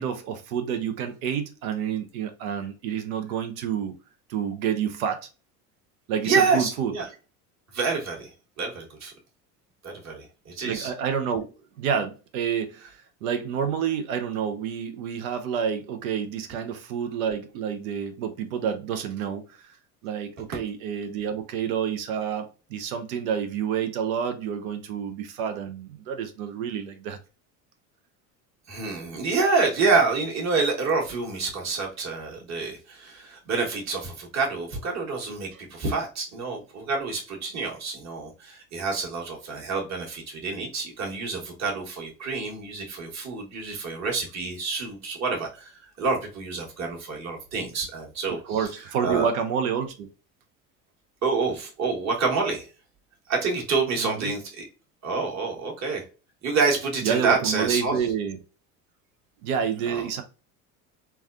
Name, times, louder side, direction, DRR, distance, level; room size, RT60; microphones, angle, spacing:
voice 1, 0.0-4.0 4.3-5.2 6.1-6.9 10.6-11.5 11.8-19.8 20.0-27.2 35.5-35.6 48.3-50.1 54.0-54.3 57.0-58.4 59.4-60.2, right 7 dB, 75° right, 0.7 m, -29 dB
voice 2, 6.2-7.1 7.7-8.3 8.6-9.1 9.8-10.9 28.7-48.7 49.0-49.3 51.2-52.7 53.3-54.6 55.0-56.0 56.4-57.9 59.9-60.0, right 4 dB, 40° right, 1.4 m, -27 dB
3.3 x 2.2 x 2.3 m
hypercardioid pair, 80°, 42 cm